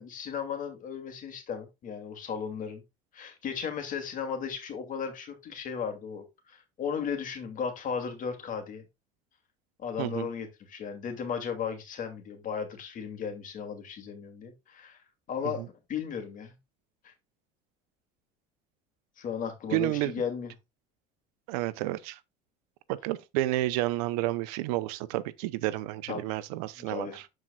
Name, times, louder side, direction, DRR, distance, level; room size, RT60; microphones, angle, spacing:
voice 1, 0.0-2.8 3.1-8.8 9.8-15.0 15.3-15.6 15.9-16.6 17.0-17.1 19.2-20.5 26.1-26.4 26.8-27.2, left 7 dB, 45° left, 2.4 m, -35 dB
voice 2, 10.0-10.3 15.6-15.7 19.7-20.1 21.5-22.2 22.9-27.2, right 16 dB, 90° right, 0.7 m, -30 dB
12.0 x 4.5 x 2.3 m
cardioid pair, 115°, 19 cm